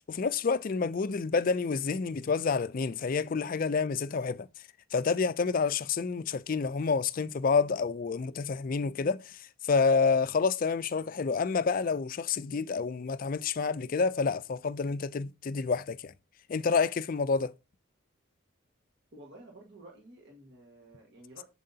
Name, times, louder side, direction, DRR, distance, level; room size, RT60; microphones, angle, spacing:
voice 1, 0.0-4.5 4.9-16.1 16.5-17.5, left 5 dB, 40° left, 0.3 m, -28 dB
voice 2, 19.1-21.4, right 1 dB, 55° right, 1.6 m, -52 dB
7.5 x 7.4 x 2.7 m
head